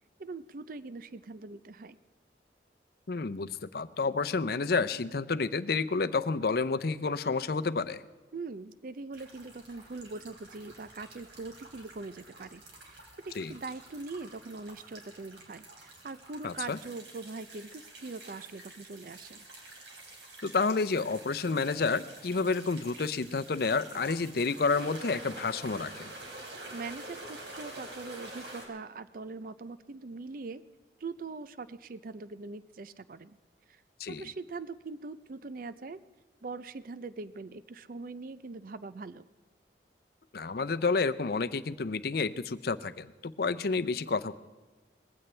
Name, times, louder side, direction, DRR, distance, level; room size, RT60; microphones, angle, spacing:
voice 1, 0.2-2.0 8.3-13.0 13.2-19.4 26.7-30.6 31.0-33.4 33.7-33.8 34.1-36.0 36.4-39.2, right 3 dB, 50° right, 15 dB, 0.5 m, -42 dB
voice 2, 3.1-8.0 13.4-13.5 16.4-16.8 20.4-26.1 34.0-34.3 40.3-44.3, left 4 dB, 60° left, 13 dB, 0.6 m, -30 dB
sound 1, 9.1-28.7, right 2 dB, 85° right, 3.4 m, -48 dB
20.5 x 15.5 x 3.3 m, 1.3 s
head